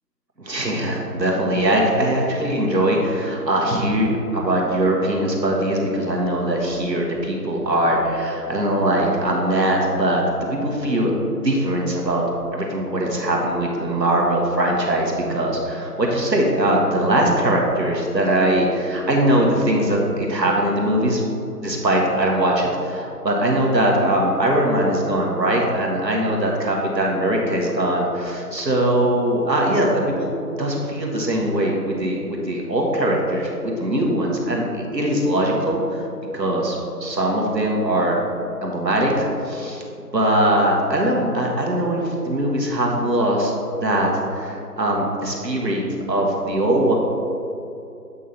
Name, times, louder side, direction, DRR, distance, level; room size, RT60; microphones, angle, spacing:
voice 1, 0.4-10.2 10.5-11.1 11.4-12.2 12.5-21.2 21.6-30.3 30.6-36.1 36.3-38.2 38.6-39.8 40.1-43.5 43.8-45.8 46.1-46.9, right 1 dB, 85° right, -1 dB, 1.6 m, -21 dB
8.3 x 3.8 x 4.3 m, 2.6 s
figure-of-eight pair, 175°, 49 cm